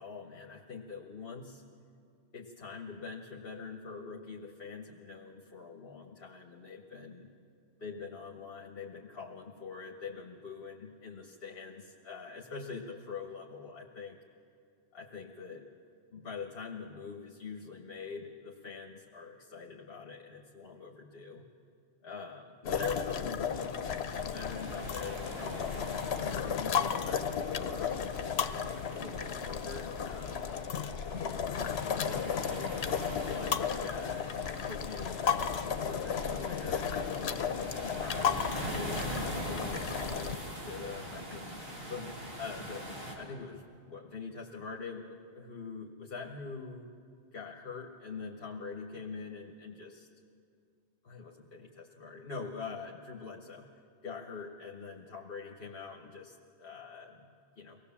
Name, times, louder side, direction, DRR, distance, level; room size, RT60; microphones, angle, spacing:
voice 1, 0.0-1.6 2.3-7.3 7.8-14.2 14.9-15.6 16.1-21.5 22.0-23.8 24.2-25.8 26.2-30.6 31.7-32.5 33.2-37.2 37.8-46.9 47.3-50.1 51.0-53.7 54.0-57.8, left 5 dB, 65° left, 1 dB, 1.4 m, -44 dB
sound 1, 22.6-40.4, left 7 dB, 90° left, 1.0 m, -34 dB
sound 2, 23.4-43.1, right 1 dB, 65° right, 4.0 m, -43 dB
24.5 x 17.5 x 7.2 m, 2.4 s
omnidirectional pair, 1.1 m